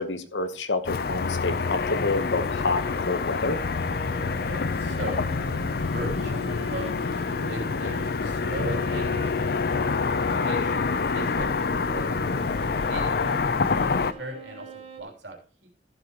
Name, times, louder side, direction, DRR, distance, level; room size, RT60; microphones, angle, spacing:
voice 1, 0.0-3.6, left 3 dB, 90° left, 1.1 m, -28 dB
Car passing by / Traffic noise roadway noise, 0.9-14.1, left 4 dB, 60° left, 0.5 m, -27 dB
Bowed string instrument, 1.5-15.0, right 3 dB, 35° right, 1.1 m, -46 dB
voice 2, 4.3-5.2 5.9-7.1 7.5-9.6 9.8-12.2 12.9-13.3 13.7-15.7, right 1 dB, 80° right, 3.0 m, -38 dB
14.5 x 7.8 x 3.0 m
head